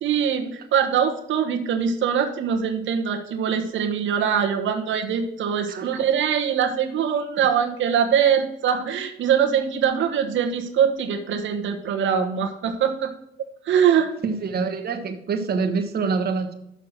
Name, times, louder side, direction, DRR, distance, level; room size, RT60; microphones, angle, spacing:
voice 1, 0.0-13.1 13.6-14.1, right 8 dB, 75° right, 5 dB, 1.2 m, -22 dB
voice 2, 14.2-16.5, right 4 dB, 50° right, 4 dB, 1.3 m, -25 dB
6.6 x 5.7 x 6.1 m, 0.81 s
cardioid pair, 90°, 20 cm